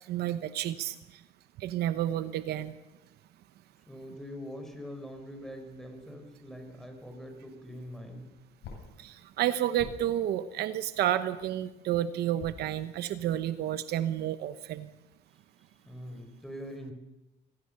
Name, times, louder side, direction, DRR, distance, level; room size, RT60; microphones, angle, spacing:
voice 1, 0.1-1.0 1.6-2.8 9.0-14.9, right 12 dB, 75° right, 12 dB, 1.0 m, -30 dB
voice 2, 3.9-8.3 15.6-16.9, equal, ahead, 5 dB, 4.9 m, -43 dB
sound 1, 7.7-11.8 12.4-15.4, left 5 dB, 80° left, 7.8 m, -52 dB
24.0 x 17.5 x 6.8 m, 1.0 s
cardioid pair, 110°, 17 cm